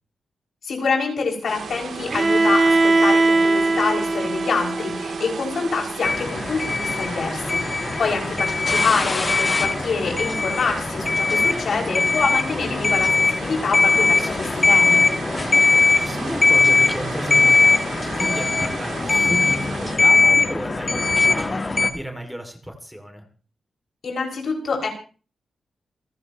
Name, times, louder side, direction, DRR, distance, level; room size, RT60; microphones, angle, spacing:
voice 1, 0.6-15.0 24.0-24.9, left 4 dB, 65° left, 1 dB, 6.1 m, -26 dB
sound 1, 1.5-20.0, right 5 dB, 75° right, 3.0 m, -35 dB
Bowed string instrument, 2.1-6.0, right 2 dB, 35° right, 1.3 m, -20 dB
sound 2, 6.0-21.9, left 3 dB, 30° left, 1.6 m, -20 dB
voice 2, 15.7-17.8 18.2-23.3, right 1 dB, 5° right, 4 dB, 2.6 m, -33 dB
28.5 x 11.5 x 3.1 m, 0.39 s
wide cardioid pair, 105°, 0 cm